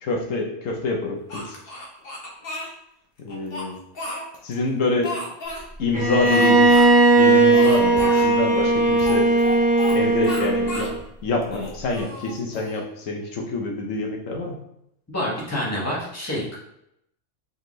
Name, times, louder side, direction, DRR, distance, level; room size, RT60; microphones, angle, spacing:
voice 1, 0.0-1.6 3.2-3.8 4.4-5.2 5.8-6.8 7.2-9.3 9.9-10.9 11.2-14.6, left 3 dB, 80° left, 2 dB, 1.2 m, -26 dB
Speech, 1.3-2.7 3.3-4.6 5.0-5.6 6.2-6.9 7.1-7.2 7.5-8.3 9.0-10.0 10.2-10.9 11.4-12.8, left 1 dB, 50° left, 1.1 m, -33 dB
Bowed string instrument, 5.9-11.0, right 2 dB, 10° right, 0.7 m, -17 dB
voice 2, 15.1-16.6, left 1 dB, 15° left, -5 dB, 1.3 m, -27 dB
4.6 x 3.6 x 3.1 m, 0.78 s
omnidirectional pair, 1.3 m